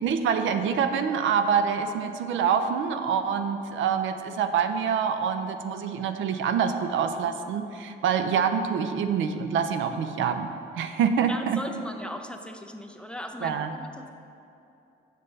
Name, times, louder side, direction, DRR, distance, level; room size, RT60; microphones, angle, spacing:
voice 1, 0.0-11.6 13.4-13.7, right 7 dB, 75° right, 8 dB, 0.5 m, -26 dB
voice 2, 11.3-14.1, equal, 5° left, 4 dB, 0.5 m, -38 dB
7.6 x 6.5 x 4.0 m, 2.7 s
cardioid pair, 90°, 20 cm